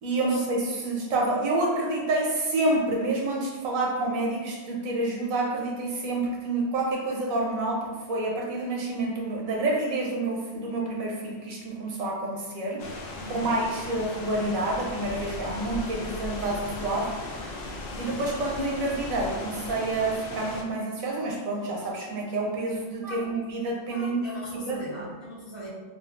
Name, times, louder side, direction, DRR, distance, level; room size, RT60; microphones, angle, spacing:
voice 1, 0.0-12.8 13.3-17.1 17.9-24.2 24.6-24.8, right 2 dB, 85° right, -2 dB, 1.1 m, -28 dB
sound 1, 12.8-20.6, left 2 dB, 65° left, 0.5 m, -37 dB
voice 2, 13.1-13.5 23.0-23.3 23.9-25.7, equal, 45° left, -9 dB, 1.1 m, -40 dB
3.7 x 2.3 x 2.4 m, 1.3 s
omnidirectional pair, 1.4 m